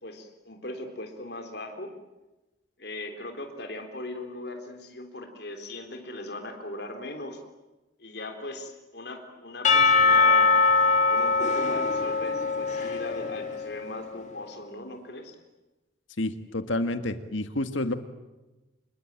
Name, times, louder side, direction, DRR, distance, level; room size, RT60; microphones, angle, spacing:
voice 1, 0.0-1.9 2.8-7.4 8.0-10.5 11.1-15.4, left 1 dB, 55° left, 5 dB, 3.7 m, -39 dB
Percussion / Church bell, 9.6-13.8, left 4 dB, 40° left, 2.3 m, -22 dB
voice 2, 16.2-17.9, left 1 dB, 85° left, 9 dB, 1.8 m, -29 dB
27.0 x 21.5 x 8.9 m, 1.1 s
head